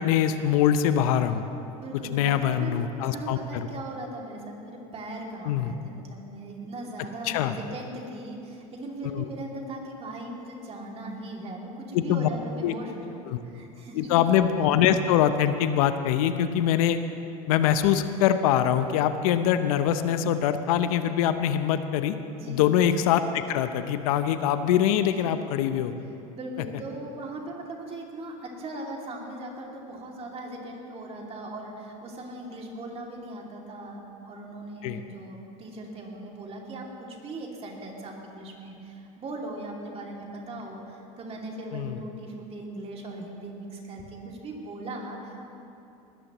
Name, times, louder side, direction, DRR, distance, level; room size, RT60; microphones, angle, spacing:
voice 1, 0.0-1.4 2.1-3.7 5.5-5.7 7.2-7.5 9.0-9.3 11.9-12.3 12.6-12.7 13.3-13.4 13.9-17.0 17.5-22.2 22.5-25.9 34.8-35.0 41.7-42.0, left 10 dB, 75° left, 10 dB, 0.7 m, -23 dB
voice 2, 1.7-14.2 22.4-22.7 25.1-25.2 26.3-45.5, right 1 dB, 35° right, 0 dB, 2.5 m, -39 dB
19.5 x 13.5 x 3.0 m, 2.8 s
supercardioid pair, 105°, 19 cm